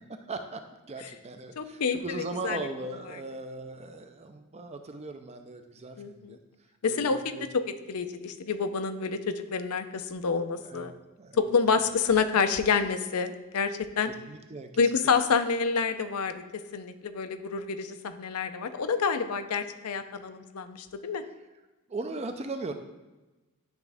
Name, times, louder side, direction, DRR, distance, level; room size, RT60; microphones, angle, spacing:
voice 1, 0.2-6.4 6.9-7.5 10.6-10.9 11.2-11.4 14.3-14.8 21.9-22.7, right 2 dB, 30° right, 6 dB, 0.5 m, -38 dB
voice 2, 1.6-2.7 3.1-3.2 6.0-6.4 6.8-10.9 11.3-14.1 14.8-16.4 16.7-21.2, left 5 dB, 80° left, 9 dB, 0.6 m, -28 dB
10.5 x 3.6 x 3.5 m, 1.1 s
head